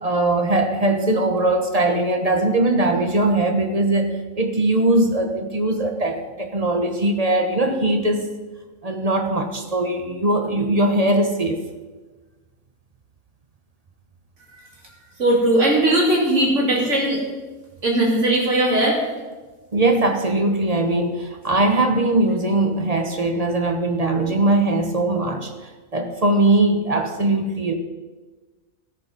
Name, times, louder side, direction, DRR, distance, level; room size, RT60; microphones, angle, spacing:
voice 1, 0.0-8.2 8.8-11.6 19.7-27.7, right 2 dB, 30° right, 4 dB, 1.1 m, -20 dB
voice 2, 15.2-17.2 17.8-19.0, right 1 dB, 55° right, -2 dB, 3.1 m, -18 dB
16.0 x 6.8 x 5.2 m, 1.3 s
omnidirectional pair, 1.5 m